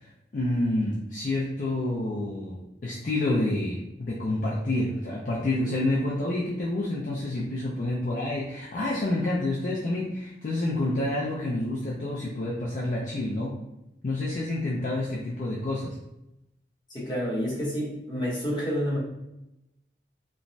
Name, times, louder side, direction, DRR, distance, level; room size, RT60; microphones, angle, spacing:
voice 1, 0.0-13.6 14.0-16.0, left 1 dB, 45° left, -4 dB, 0.4 m, -28 dB
voice 2, 16.9-19.0, equal, 25° left, -5 dB, 0.8 m, -29 dB
3.0 x 2.1 x 2.6 m, 0.88 s
head